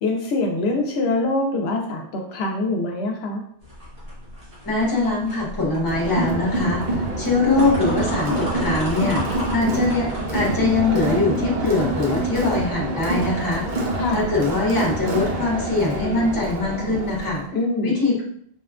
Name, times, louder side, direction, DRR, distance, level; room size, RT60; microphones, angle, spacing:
voice 1, 0.0-3.4 13.9-14.3 17.5-18.0, left 2 dB, 75° left, 2 dB, 0.8 m, -24 dB
sound 1, 3.6-11.1, equal, 80° right, 1.6 m, -36 dB
voice 2, 4.6-6.8 7.2-9.2 9.5-13.7 14.1-17.4 17.8-18.2, left 3 dB, 20° left, -3 dB, 0.8 m, -22 dB
Crowd, 5.9-17.4, right 1 dB, 50° right, 0.7 m, -26 dB
4.7 x 2.2 x 2.4 m, 0.66 s
omnidirectional pair, 1.1 m